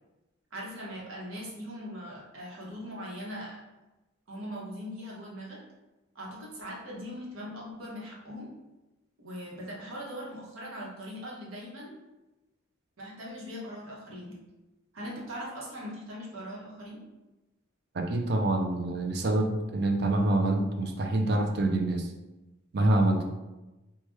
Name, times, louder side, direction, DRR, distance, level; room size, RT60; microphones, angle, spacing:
voice 1, 0.5-3.6 4.3-5.6 6.1-8.5 9.2-12.0 13.0-14.4 14.9-17.0, equal, 85° right, -4 dB, 0.9 m, -40 dB
voice 2, 17.9-22.1 22.7-23.2, right 2 dB, 50° right, 3 dB, 0.4 m, -26 dB
3.2 x 2.2 x 3.1 m, 1.1 s
head